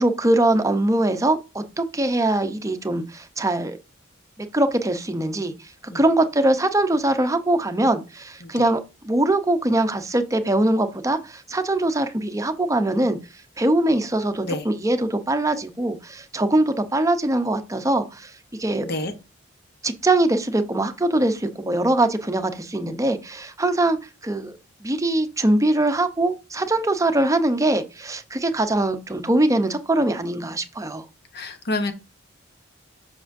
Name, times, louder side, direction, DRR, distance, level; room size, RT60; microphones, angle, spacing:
voice 1, 0.0-3.8 4.5-13.2 13.6-18.3 18.6-18.9 19.8-24.0 24.2-31.0, right 1 dB, 15° right, 0.7 m, -22 dB
voice 2, 18.8-19.1 31.3-31.9, left 2 dB, 55° left, 0.9 m, -27 dB
7.5 x 6.1 x 2.6 m
head